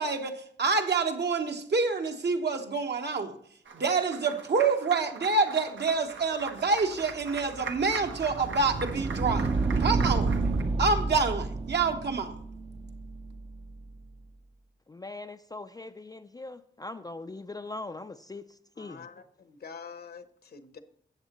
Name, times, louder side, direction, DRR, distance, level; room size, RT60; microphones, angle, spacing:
voice 1, 0.0-3.4 3.7-9.5 9.8-10.3 10.8-12.3, right 4 dB, 60° right, 4 dB, 1.1 m, -27 dB
Applause, 3.7-10.6, right 5 dB, 85° right, 1.1 m, -42 dB
sound 1, 7.1-14.0, right 3 dB, 30° right, 0.5 m, -30 dB
voice 2, 14.9-18.4 18.8-19.1, left 2 dB, 20° left, 8 dB, 0.3 m, -41 dB
voice 3, 18.8-20.8, left 6 dB, 55° left, 10 dB, 0.8 m, -46 dB
13.0 x 8.2 x 3.0 m, 0.65 s
wide cardioid pair, 135°, 19 cm